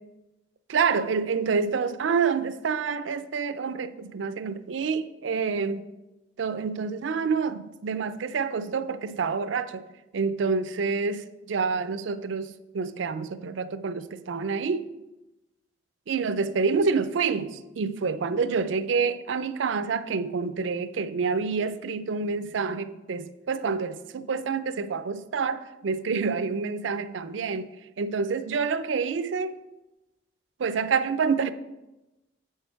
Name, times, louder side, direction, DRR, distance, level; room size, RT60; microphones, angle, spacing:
voice 1, 0.7-5.8 6.4-9.9 10.1-14.9 16.1-27.7 28.0-29.5 30.6-31.5, right 5 dB, 80° right, 0.4 m, -27 dB
7.8 x 6.4 x 4.5 m
head